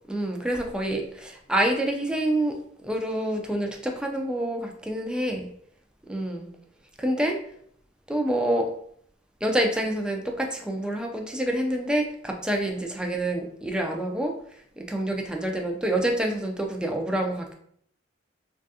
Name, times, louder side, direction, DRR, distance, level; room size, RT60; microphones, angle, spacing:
voice 1, 0.1-2.5 2.8-5.5 6.1-6.5 7.0-7.4 8.1-8.7 9.4-14.3 14.8-17.5, right 1 dB, 5° right, 2 dB, 0.3 m, -27 dB
3.3 x 2.3 x 2.6 m, 0.65 s
head